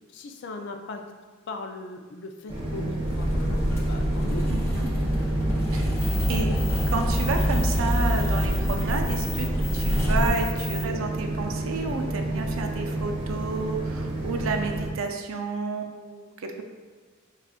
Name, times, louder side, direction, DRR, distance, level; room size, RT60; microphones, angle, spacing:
voice 1, 0.1-1.0 1.5-4.5 5.8-6.0, left 2 dB, 60° left, 4 dB, 0.4 m, -38 dB
sound 1, 2.5-14.9, right 2 dB, 30° right, 0.6 m, -30 dB
sound 2, 3.0-10.3, equal, 15° left, 0.6 m, -26 dB
voice 2, 4.5-4.9 5.7-5.9 6.3-6.6 6.9-9.5 9.7-16.6, right 3 dB, 85° right, 4 dB, 0.4 m, -31 dB
sound 3, 6.0-10.8, left 2 dB, 75° left, 0.8 m, -37 dB
5.0 x 2.3 x 2.4 m, 1.5 s
head